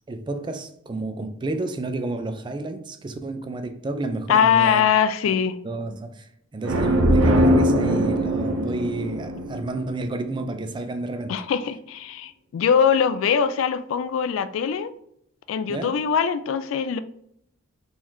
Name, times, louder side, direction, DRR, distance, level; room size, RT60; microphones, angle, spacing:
voice 1, 0.1-4.9 5.2-5.3 5.6-11.4 15.7-16.0, right 2 dB, 25° right, 0.3 m, -30 dB
voice 2, 4.3-5.6 11.3-14.9 15.5-17.0, left 7 dB, 75° left, 0.3 m, -22 dB
sound 1, 6.6-10.3, equal, 85° right, 0.5 m, -21 dB
3.9 x 3.0 x 2.6 m
head